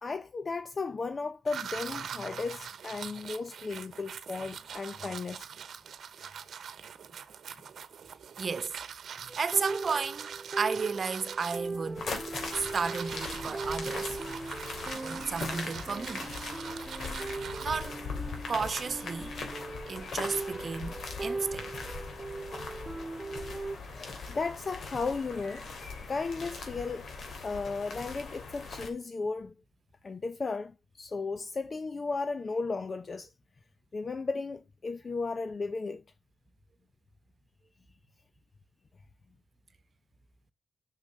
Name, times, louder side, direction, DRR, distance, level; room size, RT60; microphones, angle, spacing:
voice 1, 0.0-5.5 9.2-9.3 23.9-25.7 26.1-27.1 27.4-29.5 30.0-33.3 33.9-36.0, left 4 dB, 45° left, 0.7 m, -35 dB
sound 1, 1.5-18.0, right 7 dB, 80° right, 0.9 m, -43 dB
voice 2, 8.4-8.7 9.4-10.3 10.6-12.1 12.5-14.2 15.0-16.3 17.6-17.9 18.5-19.3 19.9-22.0, right 5 dB, 55° right, 1.0 m, -33 dB
sound 2, 9.3-23.8, right 3 dB, 25° right, 0.6 m, -39 dB
sound 3, 12.0-28.9, left 4 dB, 75° left, 2.9 m, -40 dB
7.1 x 6.6 x 6.7 m
cardioid pair, 95°, 0 cm